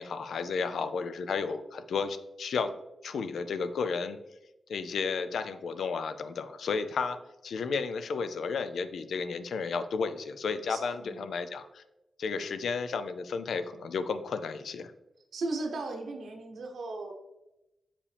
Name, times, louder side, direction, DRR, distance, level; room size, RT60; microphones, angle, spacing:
voice 1, 0.0-2.7 3.0-4.2 4.7-7.2 7.4-11.8 12.2-14.9, left 5 dB, 75° left, 11 dB, 0.4 m, -33 dB
voice 2, 10.7-11.3 15.3-17.1, right 2 dB, 70° right, 2 dB, 0.8 m, -36 dB
7.0 x 4.9 x 3.3 m, 0.93 s
wide cardioid pair, 165°, 0 cm